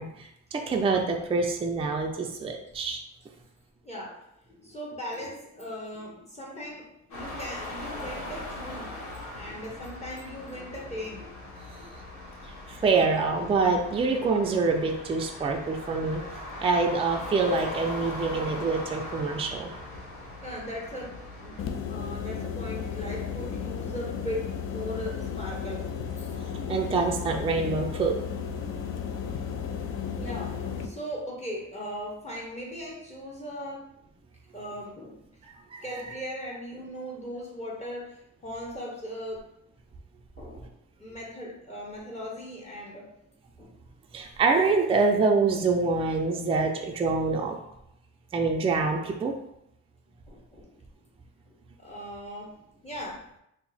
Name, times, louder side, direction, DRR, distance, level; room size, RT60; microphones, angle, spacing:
voice 1, 0.0-3.0 12.7-16.2 16.6-19.7 26.7-28.2 35.7-35.8 44.1-47.5 48.3-49.3, right 4 dB, 20° right, 2 dB, 0.4 m, -25 dB
voice 2, 3.8-9.0 9.3-11.3 11.8-11.9 20.4-21.6 21.8-25.9 26.2-26.3 30.1-33.9 34.5-35.2 35.8-39.5 40.4-40.7 41.0-43.1 43.6-43.7 50.3-50.8 51.5-52.5 52.8-53.2, equal, 20° left, -4 dB, 0.9 m, -38 dB
sound 1, 7.1-21.6, left 1 dB, 75° left, 1.0 m, -40 dB
sound 2, 21.6-30.9, left 7 dB, 45° left, 0.4 m, -34 dB
2.8 x 2.0 x 3.9 m, 0.79 s
cardioid pair, 90°, 30 cm